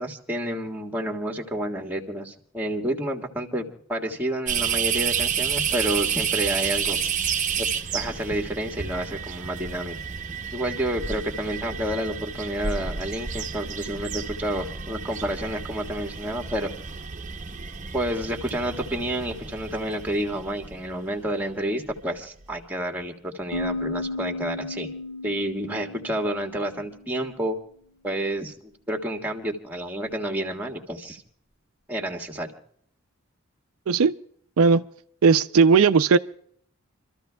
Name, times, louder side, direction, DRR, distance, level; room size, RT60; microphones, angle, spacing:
voice 1, 0.0-7.0 7.6-7.7 7.9-9.9 10.5-16.7 17.9-24.9 25.2-27.6 28.0-28.5 28.9-31.2 31.9-32.5, right 1 dB, 10° right, 1.6 m, -29 dB
sound 1, 4.5-21.3 21.9-22.0 22.4-22.6, right 7 dB, 35° right, 0.8 m, -30 dB
sound 2, 23.5-27.1, left 2 dB, 90° left, 6.4 m, -34 dB
voice 2, 35.2-36.2, right 5 dB, 80° right, 0.4 m, -17 dB
28.5 x 14.0 x 2.3 m
head